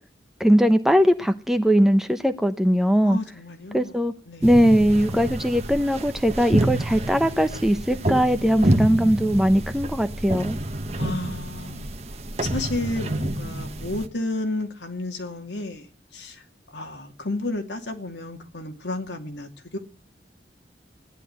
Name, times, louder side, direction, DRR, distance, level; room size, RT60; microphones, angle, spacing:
voice 1, 0.4-3.2 3.7-4.1 4.4-10.6, equal, ahead, 0.9 m, -20 dB
voice 2, 3.0-3.9 4.3-5.3 11.0-11.9 12.4-15.9 16.1-16.4 16.7-19.8, left 2 dB, 90° left, 2.6 m, -32 dB
sound 1, 4.4-14.1, right 1 dB, 35° right, 1.2 m, -28 dB
16.0 x 11.0 x 8.1 m
head